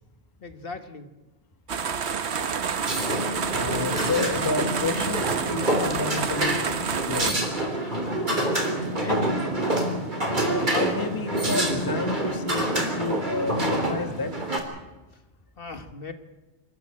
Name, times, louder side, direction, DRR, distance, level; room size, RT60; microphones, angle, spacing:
voice 1, 0.4-1.1 8.5-9.4 15.6-16.1, left 5 dB, 50° left, 8 dB, 1.7 m, -37 dB
sound 1, 1.7-7.3, right 6 dB, 65° right, 1.3 m, -29 dB
sound 2, 2.8-14.6, right 1 dB, 40° right, 3.4 m, -27 dB
voice 2, 3.5-6.6 7.1-7.4 10.4-14.3, left 3 dB, 20° left, 8 dB, 1.2 m, -30 dB
25.5 x 13.5 x 8.6 m, 1.1 s
omnidirectional pair, 1.2 m